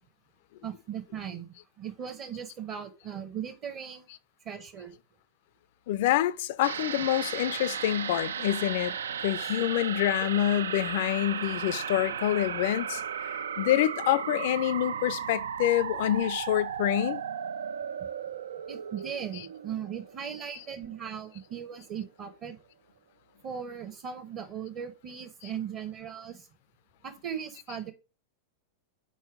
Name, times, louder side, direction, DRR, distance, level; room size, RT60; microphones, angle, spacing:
voice 1, 0.6-4.1 4.4-4.9 9.4-9.5 18.7-22.6 23.4-26.5 27.0-27.9, right 8 dB, 35° right, 0.9 m, -38 dB
voice 2, 5.9-8.9 9.2-17.2, left 13 dB, 50° left, 0.4 m, -27 dB
sound 1, 6.6-21.3 21.6-21.7, right 7 dB, 65° right, 0.3 m, -35 dB
5.4 x 4.5 x 4.8 m
figure-of-eight pair, 90°, 0 cm